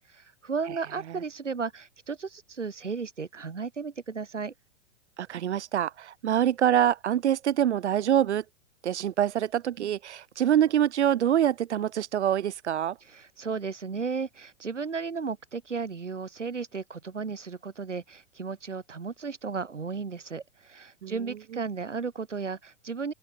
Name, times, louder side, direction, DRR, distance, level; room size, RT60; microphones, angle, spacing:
voice 1, 0.1-4.5 13.1-23.1, right 5 dB, 85° right, 2.7 m, -34 dB
voice 2, 5.2-8.4 8.8-13.0 21.0-21.1, right 10 dB, 70° right, 1.6 m, -25 dB
open air
figure-of-eight pair, 105°, 36 cm